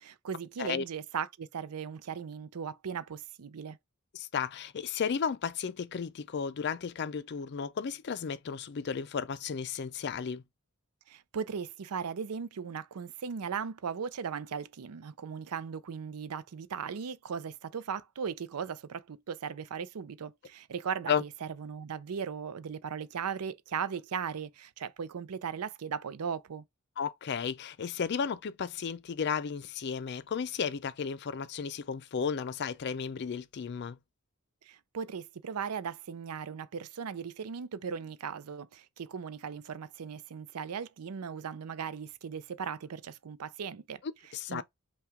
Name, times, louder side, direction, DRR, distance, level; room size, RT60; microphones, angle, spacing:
voice 1, 0.0-3.8 11.1-26.6 34.6-44.6, right 6 dB, 90° right, 0.5 m, -38 dB
voice 2, 4.1-10.4 21.1-21.2 27.0-34.0 44.0-44.6, left 6 dB, 50° left, 0.4 m, -34 dB
5.6 x 2.3 x 3.6 m
head